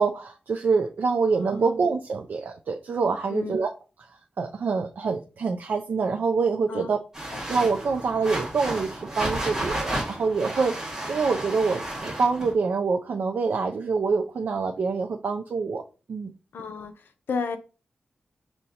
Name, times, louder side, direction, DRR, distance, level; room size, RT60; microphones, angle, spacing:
voice 1, 0.0-3.7 4.4-7.0 7.5-10.8 11.1-15.8 16.1-16.3, right 4 dB, 65° right, 4 dB, 0.4 m, -25 dB
voice 2, 1.3-1.8 3.3-3.6 6.7-6.9 7.3-7.4 16.5-17.6, left 5 dB, 90° left, 9 dB, 0.6 m, -33 dB
sound 1, 7.1-12.5, right 1 dB, 15° right, 1.9 m, -32 dB
6.3 x 2.9 x 2.8 m, 0.33 s
wide cardioid pair, 135°, 3 cm